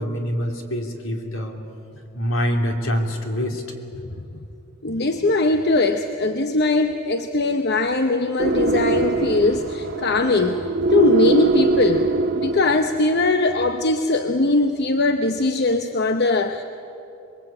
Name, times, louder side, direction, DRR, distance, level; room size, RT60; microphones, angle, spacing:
voice 1, 0.0-1.6 2.1-3.6, equal, 75° left, 3 dB, 3.2 m, -25 dB
voice 2, 4.8-12.1 12.3-16.6, left 2 dB, 55° left, 7 dB, 0.9 m, -20 dB
sound 1, 8.4-13.0, right 3 dB, 55° right, 1.7 m, -22 dB
26.5 x 21.5 x 8.8 m, 2.8 s
head